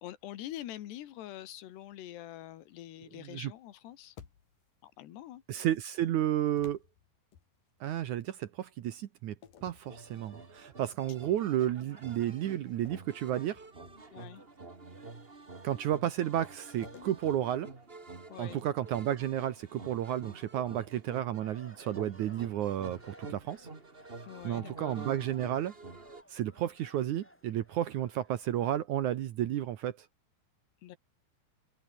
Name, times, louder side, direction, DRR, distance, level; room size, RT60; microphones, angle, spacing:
voice 1, 0.0-4.2 4.8-5.4 14.1-14.4 18.3-18.6 24.3-25.1 30.8-31.0, left 13 dB, 75° left, 3.6 m, -45 dB
sound 1, 4.2-4.8 6.6-7.9 9.4-10.8 11.2-11.5 12.8-14.3 16.8-18.5, left 8 dB, 55° left, 3.8 m, -56 dB
voice 2, 5.5-6.8 7.8-9.4 9.6-13.6 15.6-17.7 18.4-23.7 24.4-25.7 26.3-30.1, right 11 dB, 75° right, 1.8 m, -32 dB
sound 2, 9.8-26.2, right 3 dB, 25° right, 1.3 m, -48 dB
sound 3, 21.4-28.8, equal, ahead, 7.5 m, -59 dB
omnidirectional pair, 5.0 m